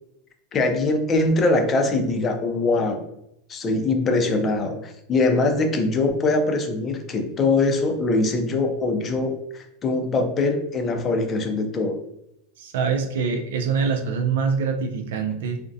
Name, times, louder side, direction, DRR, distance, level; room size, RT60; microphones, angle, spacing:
voice 1, 0.5-3.1 3.5-12.0, left 2 dB, 25° left, 4 dB, 0.4 m, -22 dB
voice 2, 12.6-15.6, right 5 dB, 80° right, 5 dB, 0.4 m, -24 dB
2.4 x 2.1 x 2.5 m, 0.81 s
supercardioid pair, 135°, 0 cm